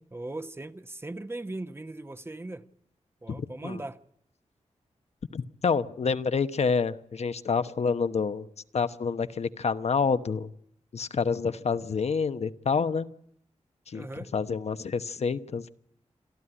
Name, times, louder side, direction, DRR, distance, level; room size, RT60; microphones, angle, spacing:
voice 1, 0.1-2.7 3.2-4.0 13.9-14.3, right 2 dB, 20° right, 0.9 m, -38 dB
voice 2, 3.3-3.8 5.3-8.5 8.7-10.5 10.9-13.1 13.9-15.7, left 5 dB, 60° left, 1.0 m, -28 dB
27.0 x 12.5 x 9.9 m
wide cardioid pair, 90°, 12 cm